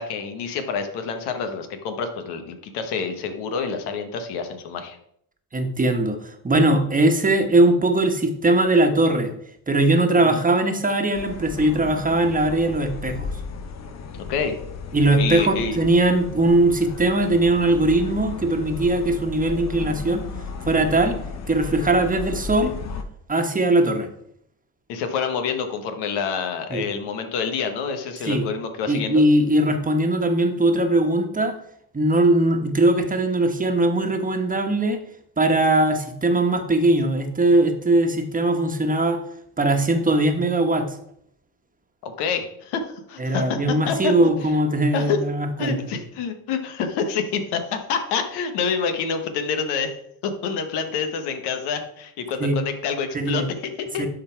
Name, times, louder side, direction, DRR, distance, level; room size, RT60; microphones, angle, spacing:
voice 1, 0.0-5.0 10.2-10.4 14.2-14.5 15.2-15.8 24.9-29.2 42.0-44.1 44.4-44.5 44.9-45.2 45.6-49.9 50.2-54.1, left 6 dB, 85° left, 7 dB, 1.3 m, -27 dB
voice 2, 5.5-9.3 9.7-13.3 14.9-20.2 20.7-21.2 21.5-22.7 23.3-24.1 26.7-26.8 28.2-28.4 28.9-31.5 31.9-35.0 35.4-39.2 39.6-41.0 43.2-45.7 52.4-52.6 53.1-53.5 54.0-54.1, right 2 dB, 20° right, 5 dB, 1.2 m, -20 dB
sound 1, 11.1-23.0, left 5 dB, 45° left, 1.0 m, -34 dB
11.5 x 4.0 x 4.6 m, 0.71 s
supercardioid pair, 90°, 39 cm